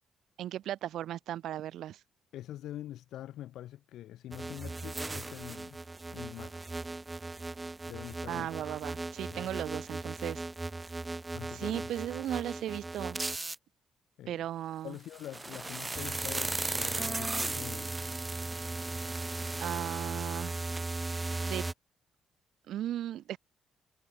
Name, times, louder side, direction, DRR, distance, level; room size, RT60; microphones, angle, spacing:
voice 1, 0.4-2.0 8.3-10.4 11.5-13.2 14.3-15.0 19.6-20.6 21.5-21.6 22.7-23.4, right 12 dB, 75° right, 0.4 m, -36 dB
voice 2, 2.3-5.8 6.1-6.7 7.9-8.5 9.3-9.5 11.3-11.9 14.2-14.4 14.8-18.0, left 13 dB, 80° left, 0.8 m, -45 dB
sound 1, 4.3-13.6 15.0-21.7, right 2 dB, 20° right, 1.1 m, -37 dB
cardioid pair, 90°, 0 cm